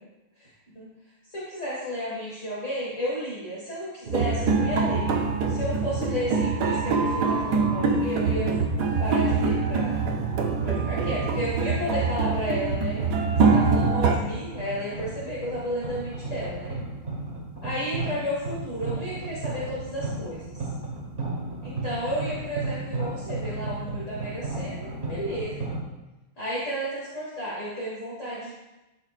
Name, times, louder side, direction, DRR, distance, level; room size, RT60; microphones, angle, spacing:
voice 1, 1.3-5.1 5.5-8.5 9.0-9.9 10.6-13.0 13.5-16.7 17.6-20.6 21.6-25.7 26.4-28.5, equal, 40° left, -8 dB, 2.1 m, -32 dB
sound 1, 4.1-14.2, right 4 dB, 65° right, 1.2 m, -24 dB
sound 2, 9.7-25.8, right 2 dB, 35° right, 1.4 m, -35 dB
12.0 x 5.6 x 2.5 m, 1.0 s
omnidirectional pair, 2.2 m